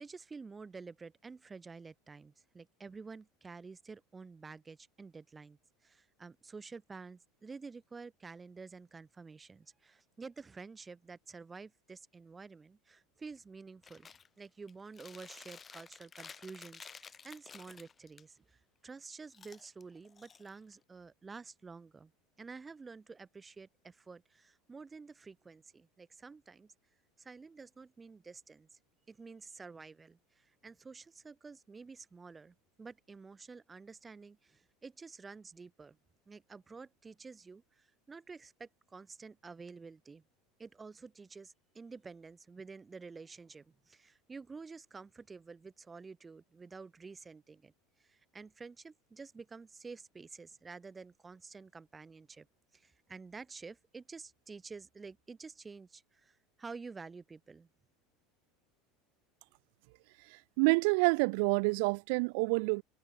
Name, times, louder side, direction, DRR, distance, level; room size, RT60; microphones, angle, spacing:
voice 1, 0.0-14.1 14.4-22.1 22.4-26.7 27.2-28.7 29.1-36.0 36.3-40.2 40.6-47.7 48.0-52.5 52.7-57.7, right 4 dB, 20° right, 5.3 m, -50 dB
Chewing mastication, 13.8-14.3 14.7-18.2 19.3-20.8, left 6 dB, 25° left, 2.3 m, -53 dB
voice 2, 60.6-62.8, right 31 dB, 65° right, 0.3 m, -27 dB
hypercardioid pair, 85°, 0 cm